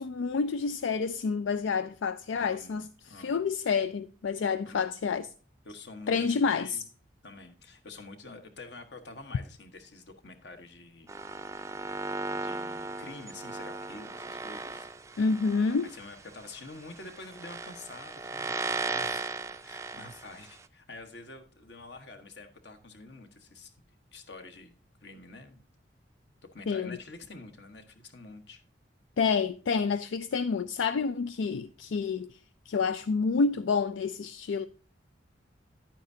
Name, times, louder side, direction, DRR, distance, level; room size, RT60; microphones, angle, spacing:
voice 1, 0.0-5.3 6.1-6.8 15.2-15.9 26.7-27.0 29.2-32.3 32.7-34.7, left 5 dB, 80° left, 0.4 m, -28 dB
voice 2, 2.3-3.5 4.6-4.9 5.6-6.8 7.2-11.1 12.3-14.9 15.8-23.7 24.1-24.7 25.0-25.6 26.5-28.6, left 3 dB, 60° left, 1.3 m, -47 dB
sound 1, 11.1-20.6, right 3 dB, 15° right, 0.4 m, -37 dB
10.5 x 9.0 x 2.7 m
head